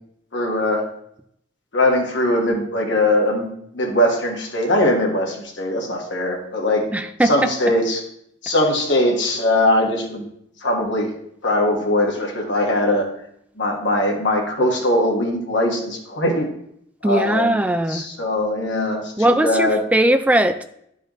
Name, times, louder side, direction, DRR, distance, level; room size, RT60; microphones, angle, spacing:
voice 1, 0.3-0.8 1.7-3.5 3.7-6.9 7.2-8.0 8.4-10.3 10.6-11.1 11.4-13.0 13.6-16.5 17.0-17.6 17.9-19.8, left 1 dB, 75° left, 0 dB, 1.5 m, -20 dB
voice 2, 6.9-7.5 17.0-18.1 19.2-20.6, right 1 dB, 10° right, 9 dB, 0.3 m, -19 dB
10.5 x 4.7 x 3.1 m, 0.72 s
head